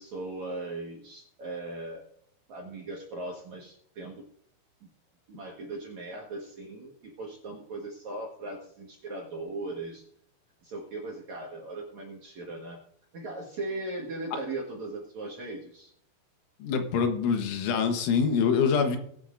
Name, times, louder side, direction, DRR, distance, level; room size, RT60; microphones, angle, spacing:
voice 1, 0.0-2.0 2.5-4.2 4.8-4.9 5.3-10.0 10.6-12.8 13.1-15.9, right 2 dB, 60° right, -2 dB, 2.0 m, -38 dB
voice 2, 16.6-19.0, left 6 dB, 85° left, 5 dB, 3.7 m, -25 dB
20.5 x 8.9 x 2.6 m, 0.65 s
omnidirectional pair, 5.4 m